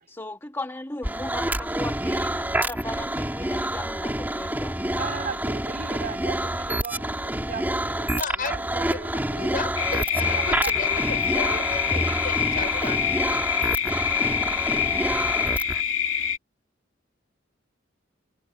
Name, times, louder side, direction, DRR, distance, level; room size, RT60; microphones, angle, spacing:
voice 1, 0.1-4.8, left 2 dB, 15° left, 2.2 m, -36 dB
sound 1, 1.0-15.8, right 1 dB, 10° right, 2.9 m, -28 dB
voice 2, 4.9-9.6 10.1-11.6, right 5 dB, 50° right, 2.9 m, -38 dB
voice 3, 8.2-8.5 8.8-9.0 9.4-13.0, left 4 dB, 45° left, 5.0 m, -34 dB
sound 2, 9.8-16.4, left 8 dB, 85° left, 2.6 m, -26 dB
head